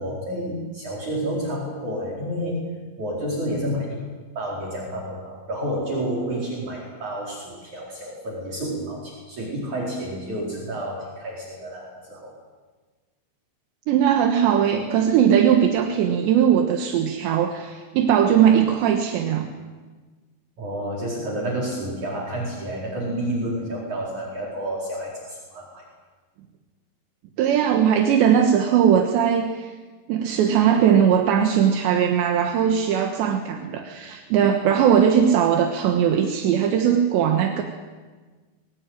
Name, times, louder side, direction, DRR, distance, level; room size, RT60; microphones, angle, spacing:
voice 1, 0.0-2.7 3.0-4.0 4.4-12.3 20.6-25.9, right 1 dB, 45° right, -2 dB, 5.5 m, -30 dB
voice 2, 13.9-19.5 27.4-29.7 30.1-37.6, right 8 dB, 75° right, 4 dB, 3.5 m, -19 dB
22.5 x 20.0 x 9.2 m, 1.4 s
omnidirectional pair, 5.1 m